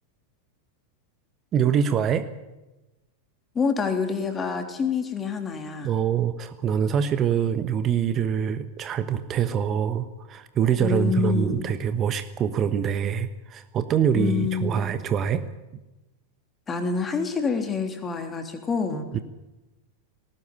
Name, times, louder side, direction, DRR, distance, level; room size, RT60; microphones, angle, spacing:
voice 1, 1.5-2.3 5.8-15.4 19.1-19.2, right 8 dB, 30° right, 11 dB, 1.2 m, -24 dB
voice 2, 3.5-5.9 10.8-11.6 14.1-14.9 16.7-19.1, left 5 dB, 20° left, 6 dB, 3.3 m, -27 dB
19.5 x 18.0 x 8.4 m, 1.0 s
figure-of-eight pair, 90°, 0 cm